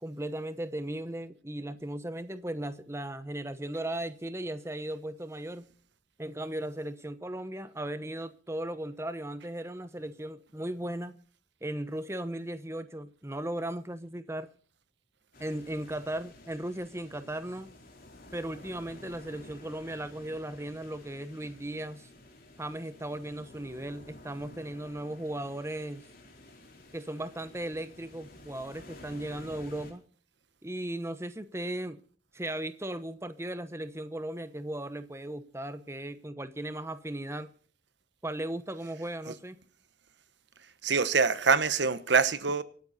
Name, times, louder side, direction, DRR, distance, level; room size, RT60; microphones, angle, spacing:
voice 1, 0.0-5.7 6.2-11.1 11.6-14.5 15.4-17.7 18.3-22.1 22.6-26.0 26.9-30.0 30.6-32.0 32.3-37.5 38.2-39.6, right 1 dB, 15° right, 0.9 m, -37 dB
sound 1, 15.3-29.9, left 1 dB, 50° left, 3.7 m, -52 dB
voice 2, 40.8-42.6, right 5 dB, 60° right, 1.1 m, -24 dB
25.5 x 9.5 x 4.2 m
head